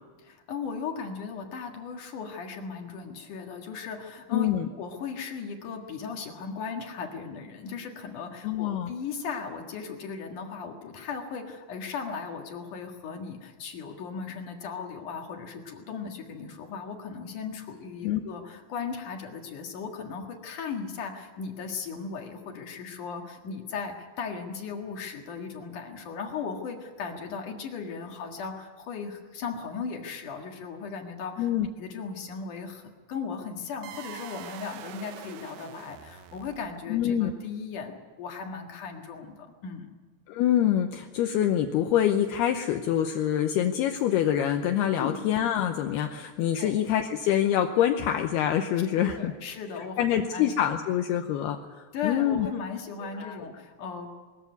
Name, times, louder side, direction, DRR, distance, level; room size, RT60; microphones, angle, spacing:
voice 1, 0.2-31.5 31.8-39.9 45.0-45.2 46.6-46.8 48.9-50.5 51.9-54.1, left 5 dB, 55° left, 3 dB, 2.6 m, -37 dB
voice 2, 4.3-4.7 8.4-8.9 18.0-18.2 31.4-31.7 36.9-37.3 40.3-49.3 50.0-52.5 53.0-53.4, left 10 dB, 80° left, 5 dB, 2.4 m, -25 dB
sound 1, 33.8-37.0, right 9 dB, 75° right, 3.2 m, -44 dB
21.5 x 14.5 x 9.5 m, 1.4 s
omnidirectional pair, 5.5 m